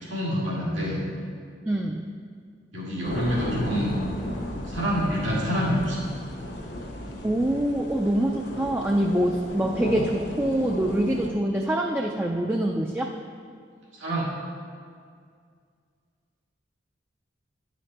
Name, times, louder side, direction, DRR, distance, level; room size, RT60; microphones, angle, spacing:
voice 1, 0.0-1.0 2.7-4.0 4.7-6.0 14.0-14.3, equal, 90° right, -6 dB, 2.3 m, -26 dB
voice 2, 1.7-2.1 7.2-13.1, right 1 dB, 10° right, 1 dB, 0.3 m, -25 dB
sound 1, 3.0-11.3, equal, 65° left, 1.0 m, -34 dB
9.9 x 5.1 x 4.2 m, 2.1 s
head